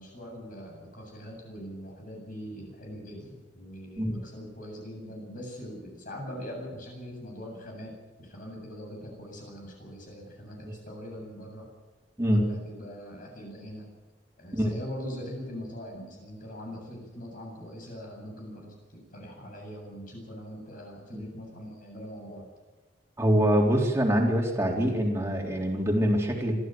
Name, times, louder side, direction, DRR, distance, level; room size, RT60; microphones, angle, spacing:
voice 1, 0.0-11.7 12.2-13.9 14.4-22.5, equal, 50° left, 0 dB, 8.0 m, -42 dB
voice 2, 23.2-26.6, equal, 15° right, -1 dB, 3.8 m, -24 dB
26.0 x 14.0 x 7.8 m, 1.1 s
head